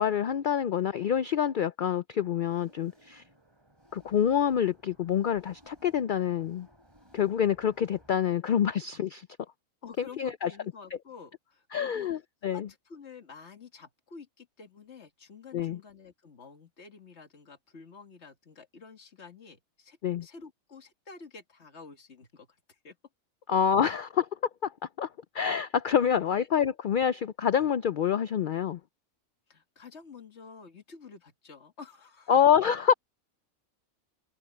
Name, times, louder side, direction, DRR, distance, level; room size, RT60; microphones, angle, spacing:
voice 1, 0.0-3.2 3.9-6.7 7.1-9.3 10.0-10.5 11.7-12.7 15.5-15.8 20.0-20.3 23.5-24.3 24.6-24.7 25.0-25.1 25.3-28.8 32.3-32.9, left 8 dB, 85° left, 0.4 m, -26 dB
sound 1, 2.2-8.1, equal, 20° right, 3.8 m, -60 dB
voice 2, 9.8-12.1 12.4-23.0 26.3-26.5 29.5-32.5, left 5 dB, 55° left, 2.3 m, -49 dB
omnidirectional pair, 1.4 m